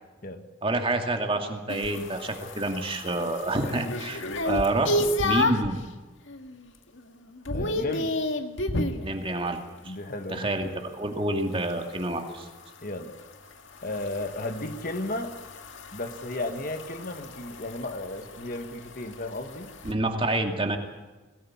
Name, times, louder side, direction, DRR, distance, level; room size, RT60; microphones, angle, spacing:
voice 1, 0.6-5.8 9.0-9.9 10.3-12.5 19.8-20.8, right 2 dB, 25° right, 4 dB, 2.5 m, -28 dB
sound 1, 1.7-5.8 6.3-6.7 6.9-9.0 11.5-19.9, left 1 dB, 75° left, 1.9 m, -32 dB
voice 2, 7.5-8.1 9.8-10.8 12.8-13.1 13.8-15.3 15.9-19.7, left 1 dB, 45° left, 6 dB, 1.7 m, -34 dB
22.0 x 18.0 x 8.7 m, 1.2 s
head